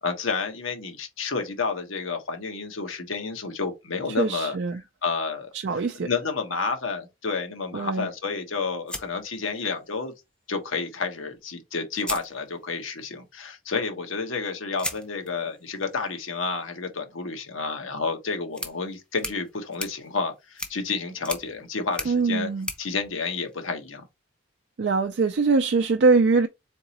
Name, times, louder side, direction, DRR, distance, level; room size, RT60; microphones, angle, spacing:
voice 1, 0.0-4.6 5.0-5.5 6.0-10.1 10.5-22.5 22.8-24.0, left 4 dB, 85° left, 1.1 m, -30 dB
voice 2, 4.1-4.8 5.5-6.1 7.7-8.1 22.1-22.7 24.8-26.5, right 4 dB, 60° right, 0.4 m, -22 dB
sound 1, 8.9-10.0 11.3-11.4 11.9-13.0 14.8-24.0, left 1 dB, 5° left, 0.6 m, -39 dB
4.0 x 3.6 x 2.8 m
head